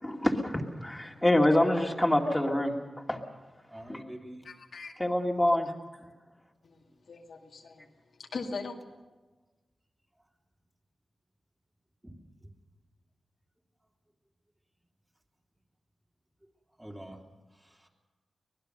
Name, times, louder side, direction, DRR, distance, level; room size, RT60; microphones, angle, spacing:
voice 1, 0.0-2.7 3.1-3.2 3.9-4.0 5.0-5.7, left 1 dB, 10° left, 1 dB, 2.5 m, -26 dB
voice 2, 3.7-4.4 12.0-12.2 16.8-17.2 17.6-17.9, right 1 dB, 15° right, -1 dB, 3.4 m, -45 dB
voice 3, 4.4-4.9 6.6-7.9 8.2-8.8, left 4 dB, 75° left, 1 dB, 2.3 m, -40 dB
24.5 x 19.5 x 6.7 m, 1.2 s
wide cardioid pair, 100°, 0 cm